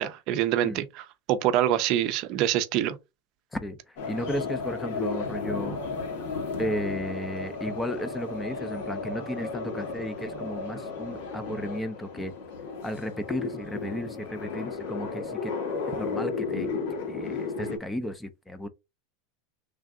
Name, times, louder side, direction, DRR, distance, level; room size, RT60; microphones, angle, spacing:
voice 1, 0.0-3.0, right 12 dB, 50° right, 0.5 m, -25 dB
voice 2, 3.5-5.8 6.6-12.3 12.8-15.5 16.0-16.7 17.1-18.7, equal, 10° left, 0.5 m, -34 dB
sound 1, 4.0-17.8, left 4 dB, 70° left, 1.3 m, -34 dB
3.3 x 2.5 x 3.7 m
supercardioid pair, 135°, 0 cm